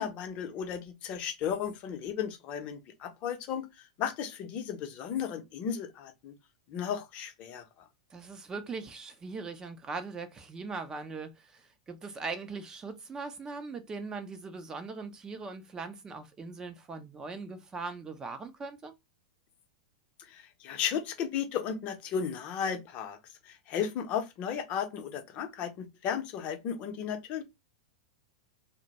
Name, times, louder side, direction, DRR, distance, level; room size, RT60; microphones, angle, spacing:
voice 1, 0.0-3.7 4.0-6.3 6.7-7.6 20.3-23.2 23.5-27.4, left 8 dB, 45° left, 0.7 m, -34 dB
voice 2, 8.1-18.9, right 4 dB, 20° right, 0.5 m, -40 dB
2.1 x 2.1 x 2.8 m
hypercardioid pair, 105°, 3 cm